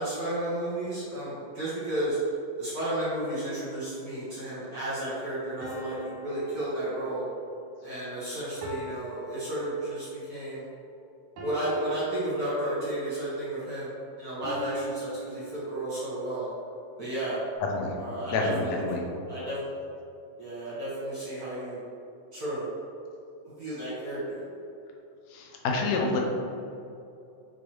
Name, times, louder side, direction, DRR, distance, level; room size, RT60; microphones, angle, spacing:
voice 1, 0.0-2.2 2.6-7.2 7.8-10.6 11.4-13.9 14.2-16.5 17.0-17.4 18.0-19.0 19.3-19.6 20.4-21.8 22.3-22.7 23.6-24.4, right 1 dB, 50° right, -10 dB, 1.4 m, -32 dB
sound 1, 3.4-4.3 5.6-7.5 8.6-10.2 11.4-13.0 14.4-16.1, right 2 dB, 70° right, 1.6 m, -42 dB
voice 2, 17.6-17.9 18.2-19.0 25.3-26.2, left 3 dB, 75° left, 0 dB, 1.7 m, -28 dB
6.9 x 4.6 x 3.0 m, 2.7 s
omnidirectional pair, 3.8 m